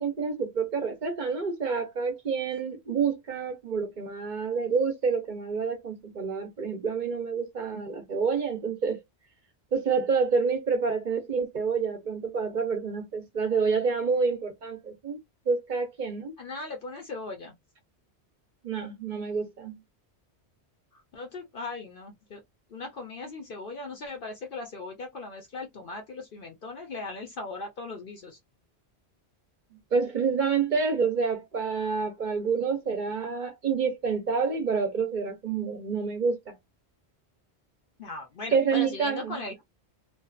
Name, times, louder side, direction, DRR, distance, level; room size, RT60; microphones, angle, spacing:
voice 1, 0.0-9.0 9.7-15.2 15.5-16.3 18.6-19.8 29.9-36.6 38.5-39.4, right 5 dB, 50° right, 0.8 m, -28 dB
voice 2, 16.4-17.5 20.9-22.4 22.7-28.4 38.0-39.6, left 3 dB, 55° left, 0.8 m, -38 dB
2.6 x 2.4 x 2.3 m
omnidirectional pair, 1.1 m